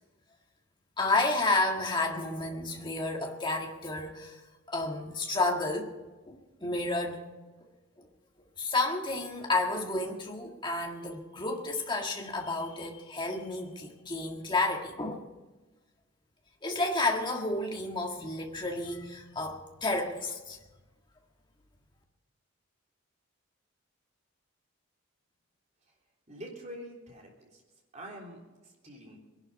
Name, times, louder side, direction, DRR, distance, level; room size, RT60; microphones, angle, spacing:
voice 1, 1.0-4.4 4.7-6.0 6.3-7.2 8.0-8.1 8.6-15.3 16.6-20.6, left 2 dB, 25° left, 2 dB, 1.8 m, -31 dB
voice 2, 26.3-27.6 27.9-29.2, equal, 35° right, -1 dB, 3.5 m, -46 dB
21.5 x 11.5 x 5.4 m, 1.2 s
head